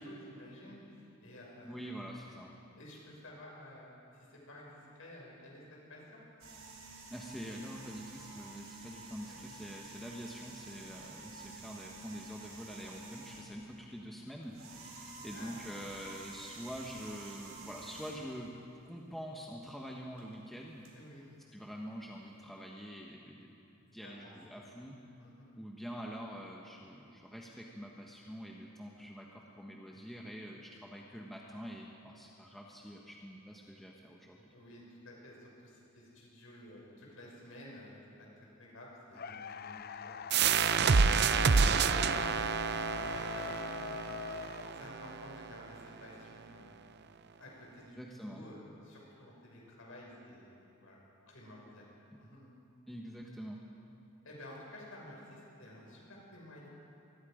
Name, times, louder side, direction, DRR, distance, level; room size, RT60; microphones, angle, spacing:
voice 1, 0.1-1.9 2.8-6.2 9.3-9.4 14.9-15.6 20.9-21.2 23.8-24.6 25.2-25.5 34.5-41.0 41.5-44.2 44.7-46.8 47.4-51.0 51.3-51.9 52.2-52.5 54.2-56.7, left 1 dB, 75° left, -3 dB, 6.4 m, -52 dB
voice 2, 1.6-2.5 7.1-18.5 18.8-20.9 21.5-23.6 23.9-25.0 25.5-34.5 48.0-48.5 52.1-52.2 52.9-53.6, equal, ahead, -2 dB, 1.4 m, -46 dB
sound 1, 6.4-13.7 14.4-18.4 20.2-20.3 20.8-20.9, right 3 dB, 85° right, 4.3 m, -50 dB
sound 2, 39.1-45.2, left 6 dB, 50° left, 0.5 m, -43 dB
sound 3, 40.3-45.7, right 5 dB, 55° right, 0.6 m, -29 dB
27.0 x 20.0 x 5.2 m, 2.7 s
head